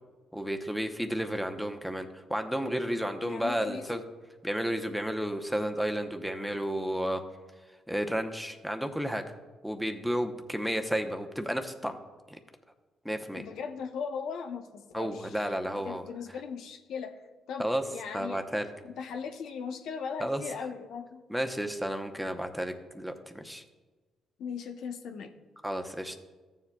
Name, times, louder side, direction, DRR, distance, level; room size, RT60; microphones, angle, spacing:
voice 1, 0.3-4.0 4.4-7.2 7.9-9.2 9.6-12.0 12.3-12.4 13.0-13.4 14.9-16.0 17.6-17.8 18.1-18.7 20.2-20.4 21.3-23.6 25.6-26.2, equal, ahead, 6 dB, 0.8 m, -32 dB
voice 2, 2.9-4.0 13.4-18.4 19.0-21.2 24.4-25.3, left 6 dB, 80° left, 4 dB, 0.7 m, -39 dB
14.5 x 7.2 x 2.3 m, 1.3 s
cardioid pair, 90°, 0 cm